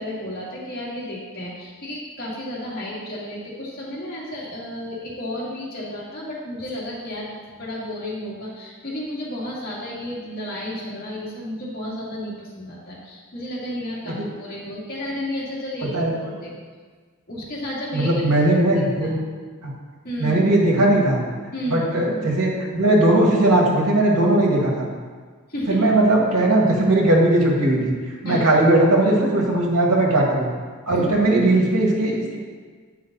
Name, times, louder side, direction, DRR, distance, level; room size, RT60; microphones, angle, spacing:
voice 1, 0.0-16.5 17.3-18.4 19.0-19.2 20.0-20.4 21.5-21.8 25.5-25.8 28.2-28.5 30.9-31.1, left 1 dB, 45° left, -6 dB, 2.3 m, -32 dB
voice 2, 17.9-19.2 19.6-19.7 20.2-21.2 21.7-24.9 25.7-27.9 28.2-30.5 30.9-32.4, right 1 dB, 80° right, -2 dB, 1.9 m, -18 dB
9.5 x 5.6 x 4.0 m, 1.5 s
head